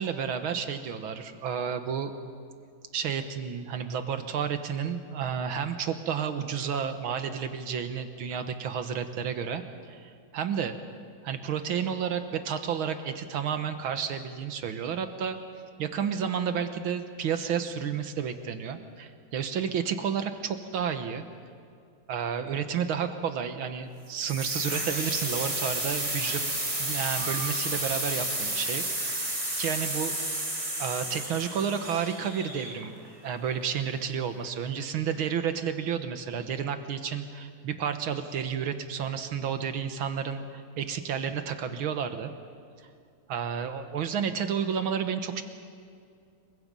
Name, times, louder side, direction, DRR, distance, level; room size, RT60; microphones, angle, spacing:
voice 1, 0.0-2.1 2.9-10.0 10.3-10.7 11.2-15.4 15.8-21.3 22.1-26.4 26.8-28.8 29.6-30.2 30.8-32.9 33.2-42.3 43.3-45.4, right 7 dB, 80° right, 8 dB, 2.1 m, -31 dB
sound 1, 24.2-33.1, right 1 dB, 15° right, 3.0 m, -31 dB
28.0 x 23.5 x 5.5 m, 2.4 s
omnidirectional pair, 2.2 m